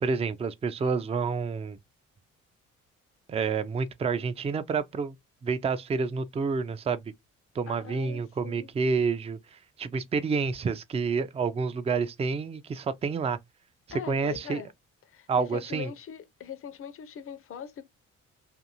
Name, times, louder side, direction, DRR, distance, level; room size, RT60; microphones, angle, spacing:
voice 1, 0.0-1.8 3.3-5.2 5.4-7.0 7.6-13.4 14.1-14.6 15.3-15.9, right 5 dB, 20° right, 0.4 m, -29 dB
voice 2, 7.7-8.7 13.9-14.7 15.1-17.8, left 8 dB, 40° left, 0.5 m, -41 dB
2.5 x 2.5 x 2.9 m
supercardioid pair, 55°, 33 cm